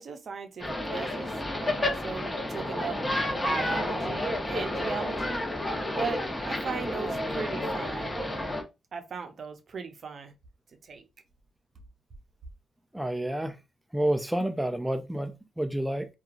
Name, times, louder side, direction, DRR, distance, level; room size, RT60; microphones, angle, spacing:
voice 1, 0.0-3.0 3.3-5.4 5.9-8.1 8.9-10.3 10.9-11.0, right 5 dB, 55° right, 0.6 m, -37 dB
sound 1, 0.6-8.6, left 1 dB, 20° left, 0.8 m, -31 dB
voice 2, 12.9-13.6 13.9-16.1, right 1 dB, 5° right, 0.3 m, -29 dB
2.8 x 2.3 x 2.4 m
cardioid pair, 70°, 0 cm